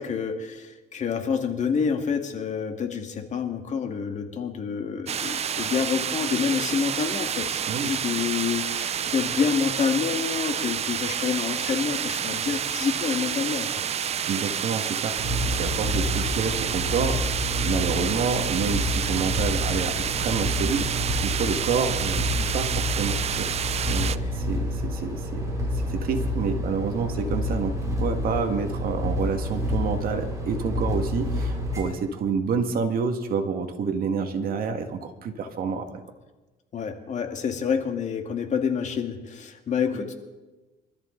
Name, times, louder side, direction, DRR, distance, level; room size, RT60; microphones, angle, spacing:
voice 1, 0.0-13.7 36.7-40.1, left 6 dB, 45° left, 5 dB, 2.0 m, -28 dB
sound 1, 5.1-24.2, right 8 dB, 40° right, 0.6 m, -29 dB
voice 2, 14.3-17.2 17.6-35.9, right 5 dB, 60° right, 5 dB, 1.9 m, -28 dB
sound 2, 15.2-31.8, left 1 dB, 20° right, 6.7 m, -29 dB
24.5 x 13.5 x 3.9 m, 1.2 s
cardioid pair, 110°, 17 cm